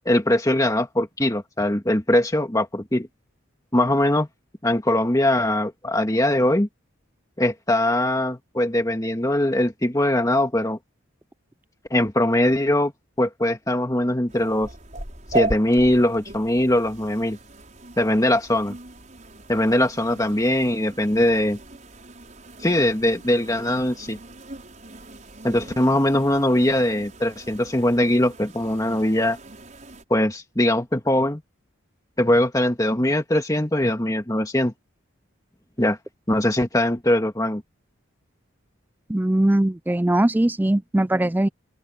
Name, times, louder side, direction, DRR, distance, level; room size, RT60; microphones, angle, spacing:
voice 1, 0.1-3.1 3.7-4.3 4.6-6.7 7.4-10.8 11.9-12.9 13.2-14.7 15.3-17.4 18.0-18.8 19.5-21.6 22.6-24.2 25.4-29.4 30.1-31.4 32.2-34.7 35.8-36.0 36.3-37.6, left 1 dB, 15° left, 1.8 m, -21 dB
sound 1, 14.3-30.0, right 2 dB, 40° right, 5.9 m, -37 dB
voice 2, 39.1-41.5, right 1 dB, 10° right, 0.3 m, -20 dB
open air
head